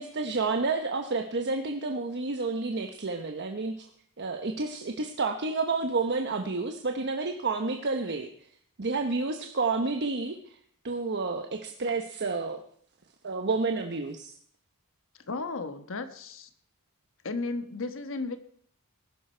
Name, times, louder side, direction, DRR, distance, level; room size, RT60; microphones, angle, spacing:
voice 1, 0.0-3.9 4.2-8.3 8.8-10.6 10.8-12.6 13.2-14.3, right 3 dB, 50° right, 5 dB, 1.0 m, -30 dB
voice 2, 15.3-16.5 17.2-18.4, left 3 dB, 60° left, 9 dB, 1.3 m, -34 dB
20.0 x 11.5 x 4.5 m, 0.62 s
head